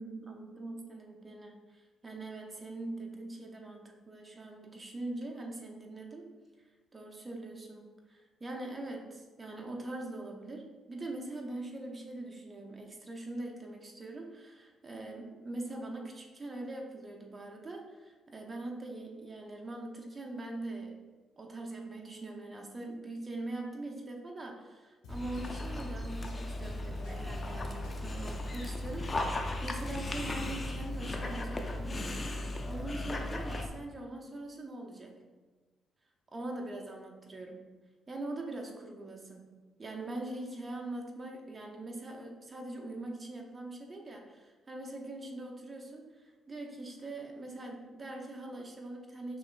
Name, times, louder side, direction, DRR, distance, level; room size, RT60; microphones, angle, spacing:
voice 1, 0.0-21.1 21.4-35.3 36.3-37.7 38.1-39.5 39.8-49.4, right 2 dB, 25° right, 1 dB, 0.7 m, -42 dB
sound 1, 25.0-31.4, left 1 dB, 90° left, 0.9 m, -50 dB
Dog, 25.1-33.7, left 1 dB, 30° left, 0.5 m, -36 dB
5.7 x 3.1 x 2.5 m, 1.3 s
cardioid pair, 90°, 0 cm